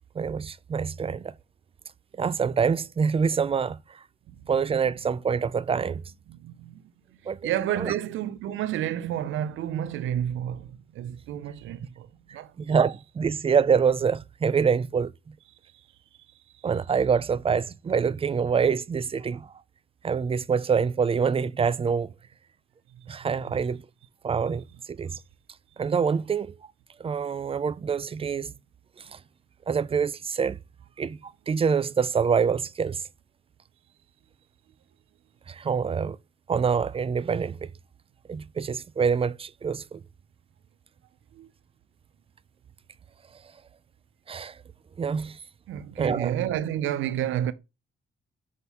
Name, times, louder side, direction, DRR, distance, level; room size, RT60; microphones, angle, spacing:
voice 1, 0.2-1.3 2.2-3.8 4.5-6.0 7.3-7.5 7.8-7.9 12.6-15.1 16.6-19.5 20.0-22.1 23.1-23.8 24.2-25.2 25.8-26.6 27.0-28.5 29.1-29.2 29.7-30.6 31.0-33.0 35.5-36.2 36.5-37.7 38.3-40.0 44.3-44.6 45.0-45.4 46.0-46.3, right 6 dB, 30° right, 0.4 m, -25 dB
voice 2, 6.3-6.8 7.4-12.5 16.6-16.7 22.9-23.1 23.5-23.6 41.3-41.5 45.7-47.5, right 11 dB, 80° right, 0.6 m, -30 dB
6.3 x 3.7 x 5.4 m
cardioid pair, 90°, 20 cm